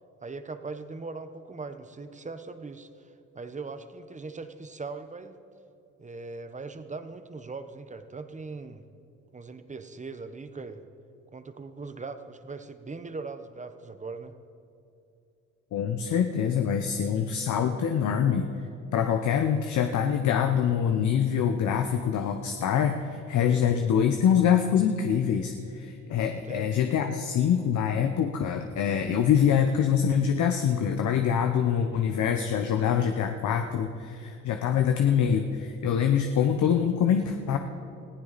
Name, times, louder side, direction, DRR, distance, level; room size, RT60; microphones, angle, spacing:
voice 1, 0.2-2.9 3.3-5.3 6.0-8.8 9.3-10.9 11.3-14.3 26.5-26.7, right 4 dB, 25° right, 10 dB, 1.0 m, -40 dB
voice 2, 15.7-18.6 18.9-37.6, left 8 dB, 75° left, 6 dB, 1.0 m, -25 dB
20.5 x 15.0 x 4.2 m, 2.7 s
cardioid pair, 90°, 30 cm